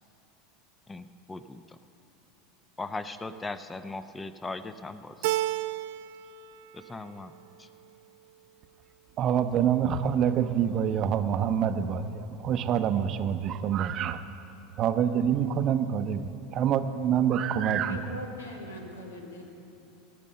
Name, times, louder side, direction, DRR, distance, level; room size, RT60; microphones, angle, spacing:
voice 1, 0.9-1.8 2.8-5.3 6.7-7.3 7.6-7.7, left 3 dB, 15° left, 11 dB, 0.6 m, -39 dB
Keyboard (musical), 5.2-6.3 6.7-7.4, right 16 dB, 60° right, 0.3 m, -31 dB
voice 2, 9.2-14.2 14.8-18.0, right 8 dB, 45° right, 10 dB, 0.7 m, -26 dB
voice 3, 17.8-19.5, left 1 dB, 85° left, 2 dB, 1.7 m, -40 dB
19.0 x 6.3 x 6.7 m, 2.8 s
hypercardioid pair, 80°, 0 cm